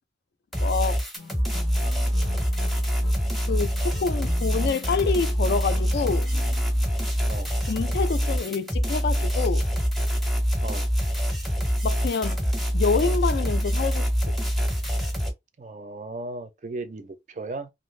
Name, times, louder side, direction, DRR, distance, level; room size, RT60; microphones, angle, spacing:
sound 1, 0.5-15.3, equal, ahead, 0.6 m, -25 dB
voice 1, 0.6-1.0 3.5-6.3 7.7-9.7 11.8-12.4 12.7-14.3, left 5 dB, 65° left, 0.3 m, -27 dB
sound 2, 1.2-7.8, left 4 dB, 90° left, 0.7 m, -44 dB
voice 2, 15.6-17.7, right 2 dB, 40° right, 0.4 m, -36 dB
2.6 x 2.4 x 3.1 m
head